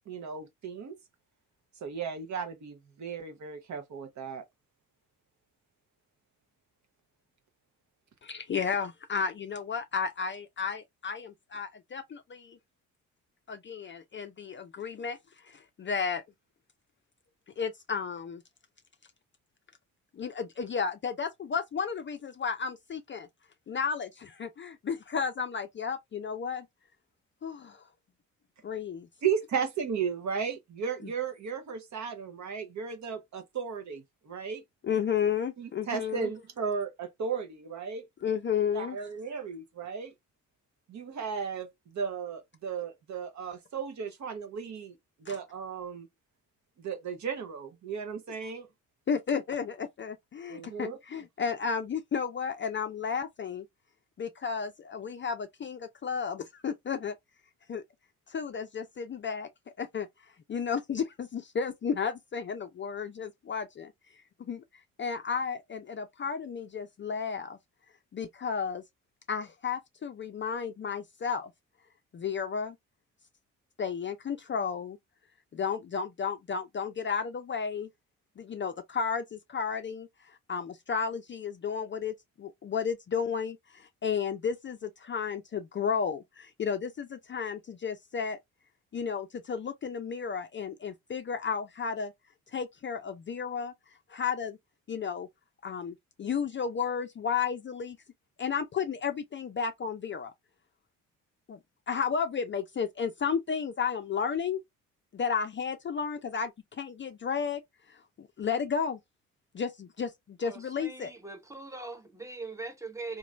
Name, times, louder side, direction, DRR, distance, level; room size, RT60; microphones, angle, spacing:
voice 1, 0.1-1.0 1.8-4.4 29.2-34.6 35.6-38.0 38.7-40.1 40.9-46.1 46.8-48.7 50.5-51.0, right 6 dB, 45° right, 0.9 m, -35 dB
voice 2, 8.2-12.6 13.5-16.2 17.6-18.4 20.1-23.3 23.7-26.7 27.4-27.8 28.6-29.1 31.0-31.1 34.8-36.3 38.2-39.0 45.3-45.4 49.1-53.7 54.2-57.2 57.7-57.8 58.3-59.5 59.8-63.9 64.4-64.6 65.0-67.6 68.1-68.8 69.3-71.5 72.1-72.8 73.8-75.0 75.5-77.9 78.4-88.4 88.9-92.1 92.5-94.6 94.9-95.3 95.6-98.0 98.4-100.3 101.5-101.6 101.9-104.6 105.1-107.6 107.9-109.0 109.5-111.1, left 6 dB, 30° left, 0.5 m, -33 dB
voice 3, 110.4-113.2, right 3 dB, 10° right, 0.8 m, -41 dB
3.0 x 2.5 x 2.4 m
hypercardioid pair, 50°, 39 cm